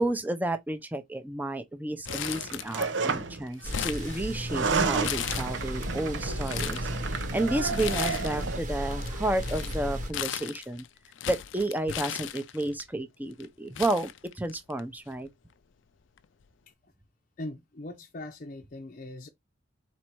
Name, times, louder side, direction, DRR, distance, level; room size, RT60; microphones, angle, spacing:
voice 1, 0.0-10.8 11.3-15.3, right 1 dB, 10° right, 0.7 m, -31 dB
Crumpling crinkling, 2.1-3.1 3.3-4.6 5.0-5.9 6.3-6.9 7.7-8.5 8.8-12.8 13.4-13.5 13.8-14.8 15.1-15.2 16.2-16.4, left 10 dB, 85° left, 0.4 m, -36 dB
sound 1, 2.1-3.4 4.4-8.6, right 4 dB, 85° right, 0.8 m, -31 dB
sound 2, 3.6-10.1, equal, 45° right, 1.1 m, -35 dB
voice 2, 17.4-19.3, left 1 dB, 45° left, 0.6 m, -40 dB
4.3 x 2.7 x 4.6 m
head